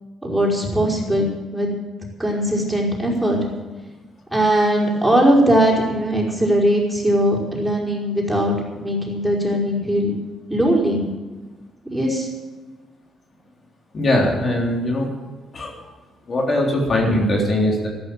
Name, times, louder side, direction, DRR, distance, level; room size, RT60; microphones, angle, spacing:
voice 1, 0.2-1.7 2.2-3.4 4.3-10.1 10.5-11.1 11.9-12.3, equal, 5° right, -3 dB, 5.2 m, -19 dB
voice 2, 13.9-15.1 15.5-15.7 16.3-17.9, left 1 dB, 45° left, -1 dB, 3.6 m, -20 dB
13.5 x 12.5 x 7.7 m, 1.3 s
cardioid pair, 90°, 0 cm